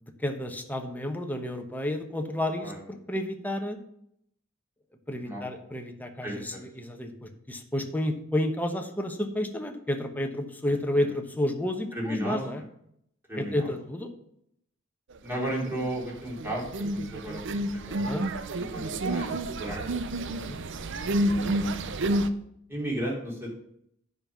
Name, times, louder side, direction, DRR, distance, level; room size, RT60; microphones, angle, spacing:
voice 1, 0.0-3.8 5.1-12.6 13.3-14.1 17.9-18.2 20.3-20.6, left 1 dB, 10° left, 4 dB, 1.1 m, -31 dB
voice 2, 6.2-6.7 10.6-11.1 11.9-12.5 13.3-13.7 15.2-16.6 16.9-19.9 21.2-21.8 22.7-23.6, right 1 dB, 10° right, -3 dB, 3.2 m, -35 dB
sound 1, 15.4-16.0 16.3-22.3, right 1 dB, 60° right, 0.6 m, -29 dB
9.8 x 5.4 x 6.2 m, 0.72 s
head